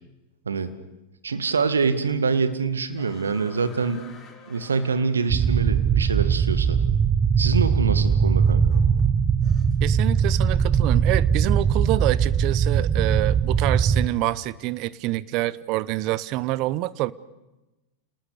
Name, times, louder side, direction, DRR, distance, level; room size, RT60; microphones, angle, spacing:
voice 1, 1.2-4.0 4.5-6.8 7.4-8.8, right 5 dB, 85° right, 11 dB, 1.8 m, -25 dB
sound 1, 2.9-5.8 6.9-7.0 8.1-9.9 10.2-10.6, left 6 dB, 30° left, 6.4 m, -50 dB
sound 2, 5.3-14.1, right 7 dB, 25° right, 1.0 m, -20 dB
voice 2, 9.8-17.1, right 17 dB, 50° right, 19 dB, 0.9 m, -26 dB
28.5 x 19.5 x 6.7 m, 1.0 s
hypercardioid pair, 95°, 0 cm